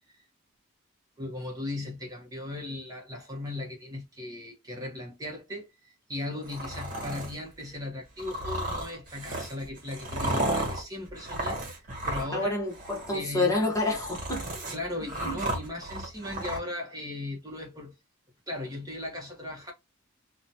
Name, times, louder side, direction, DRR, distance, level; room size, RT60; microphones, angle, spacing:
voice 1, 1.2-12.6 13.1-13.5 14.7-17.9 18.5-19.7, left 2 dB, 20° right, 0.8 m, -37 dB
sound 1, 6.4-7.4 8.2-12.5 12.7-13.2 13.6-16.6, right 1 dB, 40° right, 1.1 m, -33 dB
voice 2, 12.3-14.4 15.2-15.3, left 2 dB, 15° left, 0.9 m, -28 dB
2.9 x 2.2 x 2.5 m
head